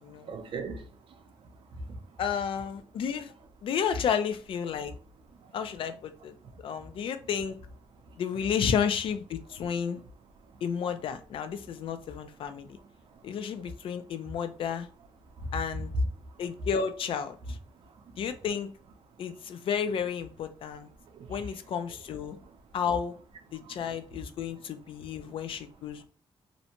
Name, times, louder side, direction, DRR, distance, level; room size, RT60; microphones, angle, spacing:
voice 1, 0.2-1.2 1.7-2.0 15.4-15.5 21.1-21.4 23.6-23.8, right 3 dB, 60° right, 0.5 m, -40 dB
voice 2, 2.2-3.3 3.6-4.9 5.5-6.4 6.6-7.6 8.2-10.0 10.6-12.8 13.2-14.9 15.5-15.9 16.4-17.6 18.2-18.7 19.2-20.9 21.3-22.4 22.7-23.1 23.5-26.0, left 7 dB, 60° left, 0.4 m, -32 dB
2.6 x 2.1 x 2.8 m
cardioid pair, 120°, 10 cm